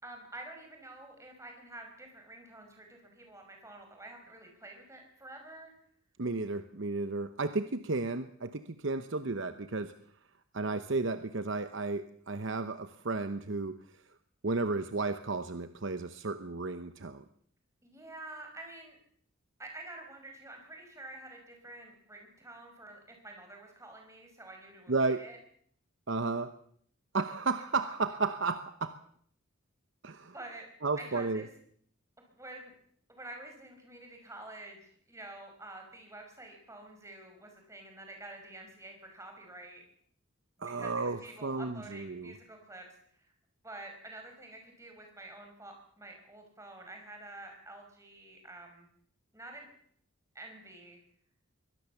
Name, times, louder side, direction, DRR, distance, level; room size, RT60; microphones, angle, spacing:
voice 1, 0.0-5.7 17.8-19.0 19.6-25.4 30.3-30.7 31.0-31.5 32.3-32.7 33.1-39.8 40.6-42.8 43.1-43.3 43.6-48.9 49.3-49.7 50.3-51.0, right 2 dB, 15° right, 3 dB, 5.4 m, -48 dB
voice 2, 6.2-9.9 10.5-13.8 14.4-17.2 24.9-25.3 26.1-26.5 27.1-29.0 30.0-30.3 30.8-31.4 40.6-42.3, right 3 dB, 55° right, 11 dB, 0.9 m, -33 dB
23.5 x 17.5 x 7.2 m, 0.63 s
head